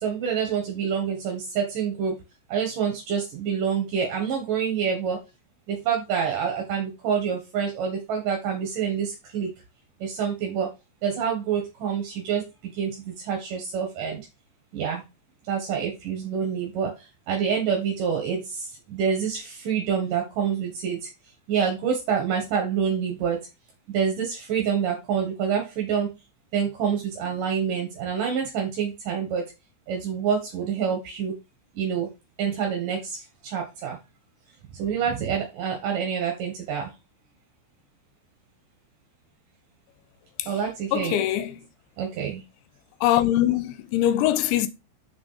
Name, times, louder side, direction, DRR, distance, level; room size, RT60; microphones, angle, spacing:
voice 1, 0.0-2.2 2.5-5.2 5.7-9.5 10.0-10.7 11.0-12.4 12.8-14.2 14.7-15.0 15.5-16.9 17.3-21.1 21.5-23.4 23.9-26.1 26.5-29.4 29.9-31.3 31.8-32.1 32.4-33.2 33.4-34.0 34.8-36.9 40.5-41.2 42.0-42.4, right 7 dB, 60° right, 2.6 m, -27 dB
voice 2, 40.9-41.7 43.0-44.7, left 13 dB, 85° left, 3.0 m, -23 dB
6.5 x 5.3 x 5.0 m
omnidirectional pair, 5.3 m